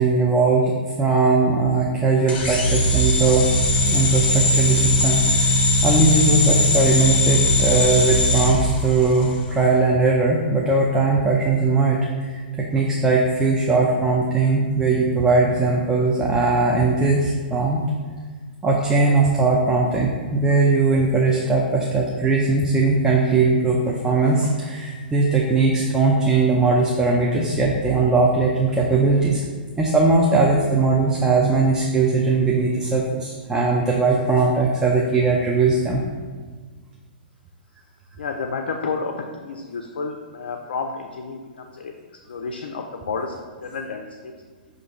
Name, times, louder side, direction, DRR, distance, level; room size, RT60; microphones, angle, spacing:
voice 1, 0.0-3.5 3.9-17.8 18.6-29.4 29.8-36.0, right 3 dB, 10° right, -2 dB, 0.5 m, -19 dB
sound 1, 2.3-9.4, left 1 dB, 30° left, 1.0 m, -19 dB
voice 2, 38.2-39.1 39.4-41.9 42.3-43.3 43.6-44.1, left 4 dB, 70° left, 3 dB, 0.4 m, -30 dB
6.1 x 2.5 x 3.1 m, 1.5 s
hypercardioid pair, 120°, 6 cm